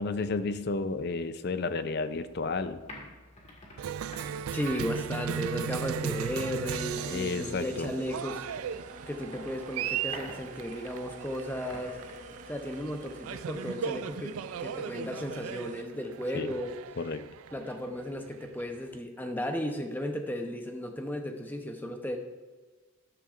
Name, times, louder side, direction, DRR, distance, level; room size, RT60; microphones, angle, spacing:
voice 1, 0.0-2.8 7.0-7.9 16.3-16.5 17.0-17.3, left 3 dB, 50° left, 12 dB, 0.5 m, -32 dB
sound 1, 2.1-13.5, left 1 dB, 30° left, 1.8 m, -51 dB
Cheering, 3.8-19.0, right 8 dB, 70° right, 0.3 m, -37 dB
voice 2, 4.5-8.5 9.1-12.0 12.5-16.8 17.5-22.2, equal, 10° left, 4 dB, 0.7 m, -35 dB
sound 2, 5.7-15.8, right 2 dB, 35° right, 0.6 m, -49 dB
13.0 x 10.0 x 2.5 m, 1.3 s
head